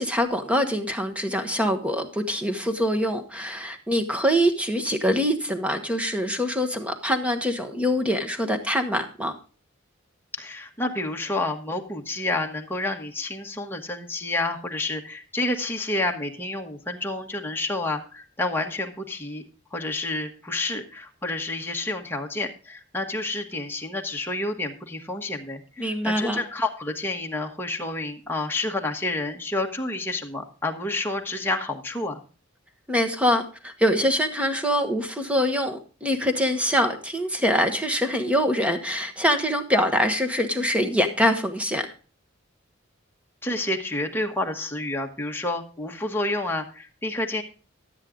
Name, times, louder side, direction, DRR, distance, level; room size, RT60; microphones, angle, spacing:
voice 1, 0.0-9.3 25.8-26.4 32.9-41.9, equal, 5° right, 7 dB, 1.2 m, -24 dB
voice 2, 10.4-19.4 19.7-32.2 43.4-47.4, left 2 dB, 10° left, 2 dB, 1.3 m, -29 dB
12.5 x 8.2 x 3.7 m, 0.37 s
head